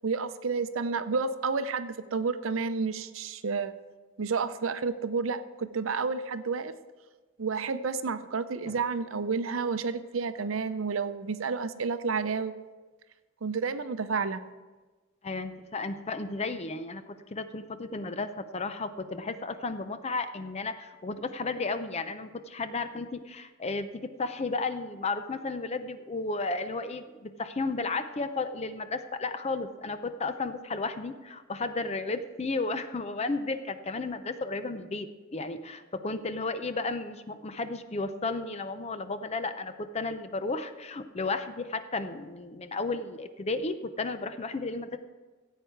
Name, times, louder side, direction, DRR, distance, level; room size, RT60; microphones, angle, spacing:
voice 1, 0.0-3.7 4.2-6.7 7.4-12.5 13.4-14.4, right 4 dB, 85° right, 12 dB, 0.6 m, -30 dB
voice 2, 15.2-45.0, left 3 dB, 30° left, 10 dB, 0.6 m, -33 dB
15.5 x 8.3 x 4.5 m, 1.3 s
head